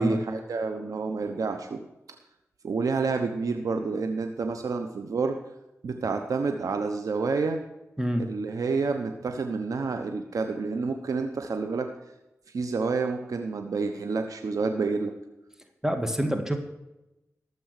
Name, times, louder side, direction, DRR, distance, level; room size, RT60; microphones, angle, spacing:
voice 1, 0.0-1.8 2.6-5.3 5.8-7.6 8.3-11.9 12.5-15.1, right 4 dB, 85° right, 6 dB, 1.0 m, -29 dB
voice 2, 15.8-16.6, equal, 10° right, 5 dB, 2.0 m, -26 dB
14.0 x 6.9 x 6.6 m, 0.94 s
cardioid pair, 45°, 6 cm